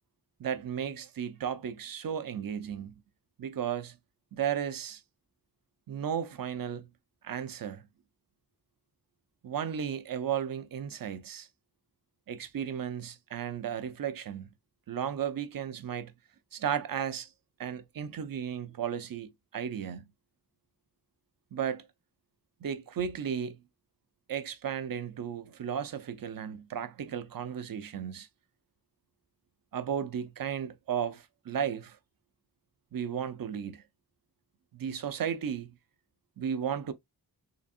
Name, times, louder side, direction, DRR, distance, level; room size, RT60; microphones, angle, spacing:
voice 1, 0.4-2.9 3.4-4.0 4.3-5.0 5.9-6.9 7.2-7.8 9.4-11.5 12.3-14.5 14.9-16.1 16.5-17.3 17.6-20.0 21.5-21.9 22.6-23.6 24.3-28.3 29.7-32.0 32.9-33.8 34.7-35.7 36.4-36.9, right 8 dB, 65° right, 0.6 m, -34 dB
3.9 x 3.3 x 2.4 m
wide cardioid pair, 150°, 37 cm